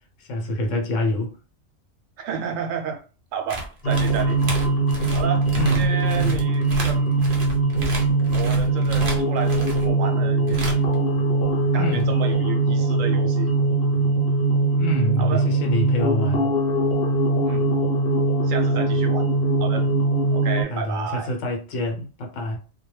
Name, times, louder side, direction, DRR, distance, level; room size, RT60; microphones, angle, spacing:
voice 1, 0.2-1.4 5.6-6.5 11.8-12.1 14.7-16.5 20.7-22.6, left 1 dB, 70° left, 1.0 m, -26 dB
voice 2, 2.2-3.0 3.3-4.4 5.1-7.2 8.3-10.8 11.7-13.5 14.0-14.1 15.2-15.5 17.4-17.7 18.4-19.3 19.6-19.9 20.3-21.3, right 7 dB, 75° right, 0.9 m, -31 dB
sound 1, 3.5-9.9 10.5-10.9 12.0-12.1, right 1 dB, 50° right, 0.7 m, -32 dB
sound 2, 3.8-20.6, right 2 dB, 50° left, 0.9 m, -21 dB
2.2 x 2.2 x 3.0 m
omnidirectional pair, 1.4 m